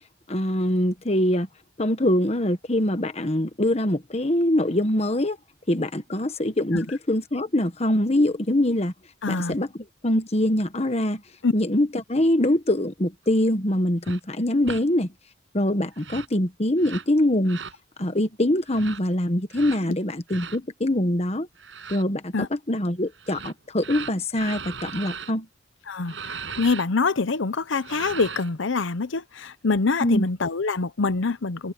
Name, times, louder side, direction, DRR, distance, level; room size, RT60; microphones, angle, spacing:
voice 1, 0.3-1.5 1.8-5.4 5.7-8.9 9.3-9.7 10.0-11.2 11.5-15.1 15.5-17.6 18.0-21.5 21.9-25.5 30.0-30.3, left 1 dB, 35° left, 1.4 m, -23 dB
voice 2, 9.2-9.6 11.4-11.5 22.3-22.5 25.9-31.7, left 4 dB, 85° left, 0.8 m, -25 dB
sound 1, 14.0-14.2 14.6-14.8 15.9-16.3 16.8-17.1 17.5-17.8 18.7-19.0 19.5-19.8 20.3-20.6 21.6-22.0 23.1-25.3 26.1-26.9 27.7-28.5, right 5 dB, 75° right, 7.3 m, -37 dB
head